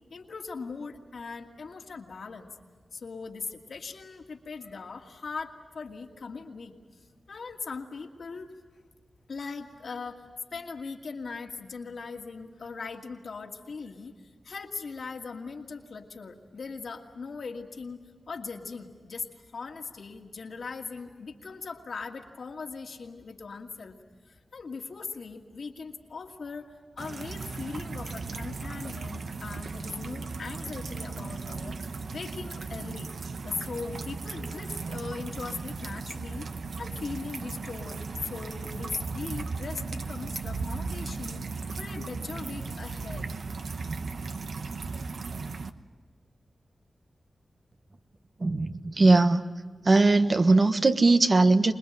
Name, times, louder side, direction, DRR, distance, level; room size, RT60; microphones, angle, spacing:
voice 1, 0.1-2.6 2.9-6.8 7.3-8.5 9.3-10.2 10.5-14.1 14.4-18.0 18.3-24.0 24.3-31.8 32.1-33.1 33.4-43.3, left 4 dB, 75° left, 2 dB, 2.3 m, -39 dB
sound 1, 27.0-45.7, right 4 dB, 70° right, 1.0 m, -36 dB
voice 2, 48.4-49.4 49.8-51.7, right 3 dB, 45° right, 8 dB, 1.3 m, -20 dB
26.0 x 20.5 x 9.1 m, 1.5 s
cardioid pair, 55°, 0 cm